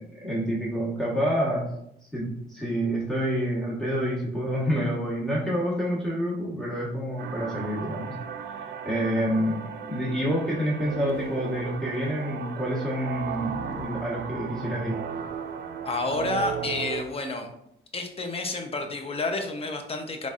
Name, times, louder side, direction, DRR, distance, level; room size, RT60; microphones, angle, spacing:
voice 1, 0.0-1.7 2.1-8.1 8.5-15.0, equal, 5° left, -6 dB, 1.4 m, -28 dB
sound 1, 7.2-17.0, right 7 dB, 55° right, 0.4 m, -36 dB
voice 2, 15.8-17.5 17.9-20.3, left 2 dB, 30° left, 5 dB, 0.7 m, -30 dB
3.9 x 3.5 x 2.5 m, 0.76 s
cardioid pair, 90°, 20 cm